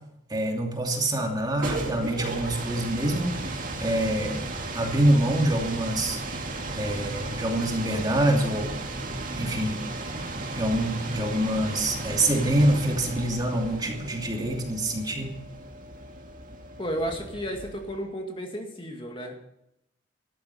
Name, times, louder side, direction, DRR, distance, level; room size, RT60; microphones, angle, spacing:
voice 1, 0.3-4.4 4.7-6.2 6.8-8.7 9.4-9.8 10.5-15.3, right 1 dB, 20° right, 1 dB, 2.7 m, -25 dB
sound 1, 1.3-18.0, right 2 dB, 45° right, 2.2 m, -35 dB
voice 2, 16.8-19.5, equal, 25° left, 2 dB, 2.1 m, -33 dB
15.0 x 12.0 x 5.6 m, 0.81 s
head